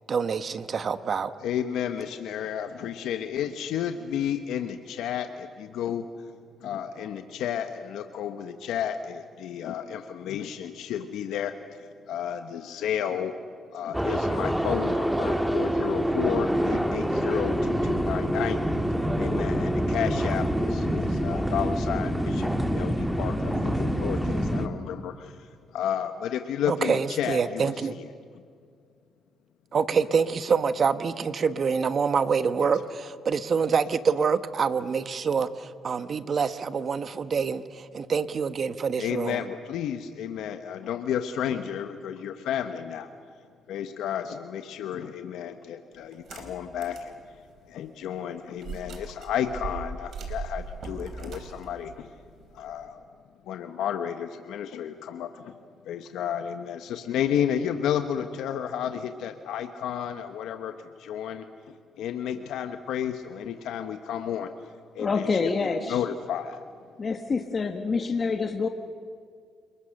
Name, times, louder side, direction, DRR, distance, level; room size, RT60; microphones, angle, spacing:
voice 1, 0.1-1.3 26.7-28.0 29.7-39.4, right 6 dB, 50° right, 12 dB, 1.2 m, -26 dB
voice 2, 1.4-6.3 6.6-13.3 13.7-18.6 18.9-28.1 32.6-32.7 39.0-43.1 43.7-47.4 47.7-52.1 52.5-53.0 53.4-55.6 55.8-60.7 61.0-66.7, left 9 dB, 85° left, 7 dB, 1.1 m, -32 dB
sound 1, 13.9-24.7, equal, 5° right, 1.8 m, -26 dB
sound 2, 46.1-47.1 47.6-47.7 48.6-52.9, right 4 dB, 65° right, 4.2 m, -39 dB
voice 3, 65.0-66.0 67.0-68.7, left 4 dB, 40° left, 5 dB, 1.6 m, -27 dB
29.5 x 21.0 x 6.6 m, 2.2 s
cardioid pair, 90°, 0 cm